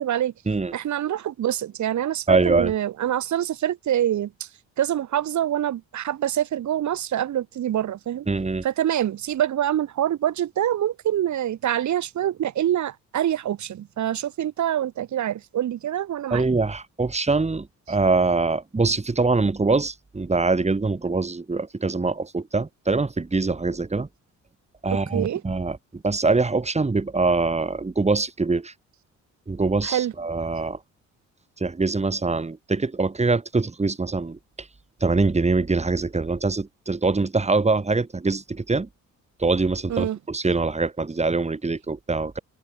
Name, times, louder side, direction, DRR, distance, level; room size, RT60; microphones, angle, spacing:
voice 1, 0.0-0.3 0.7-4.5 4.8-8.3 8.6-16.5 24.9-25.4 29.8-30.1 39.9-40.2, right 11 dB, 70° right, 4.1 m, -25 dB
voice 2, 2.3-2.7 8.3-8.6 16.3-24.1 24.8-28.7 29.5-30.8 31.6-34.7 35.0-38.9 39.4-42.4, right 3 dB, 20° right, 4.5 m, -23 dB
cardioid pair, 90°, 30 cm